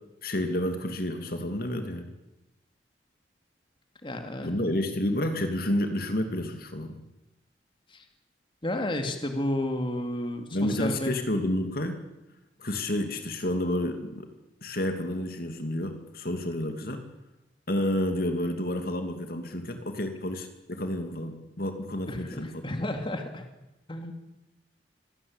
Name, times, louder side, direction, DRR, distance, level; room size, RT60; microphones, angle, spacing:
voice 1, 0.2-2.1 4.4-7.0 10.5-12.0 12.6-14.3 14.6-17.0 17.7-22.8, left 1 dB, 55° left, 6 dB, 2.6 m, -30 dB
voice 2, 4.0-4.5 7.9-8.0 8.6-11.1 22.1-23.5 23.9-24.1, left 1 dB, 30° left, 5 dB, 2.6 m, -32 dB
25.5 x 17.0 x 8.9 m, 0.97 s
head